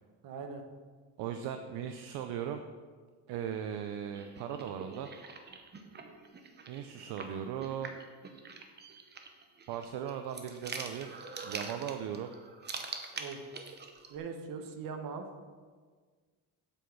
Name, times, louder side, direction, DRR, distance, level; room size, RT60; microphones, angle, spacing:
voice 1, 0.2-0.6 13.1-13.4 14.1-15.3, right 5 dB, 50° right, 5 dB, 1.2 m, -41 dB
voice 2, 1.2-2.6 3.3-5.1 6.7-8.0 9.7-11.1 11.4-12.3, right 9 dB, 70° right, 7 dB, 0.7 m, -38 dB
sound 1, 4.1-14.2, right 4 dB, 25° right, 0.8 m, -45 dB
8.2 x 6.0 x 7.0 m, 1.5 s
cardioid pair, 165°, 41 cm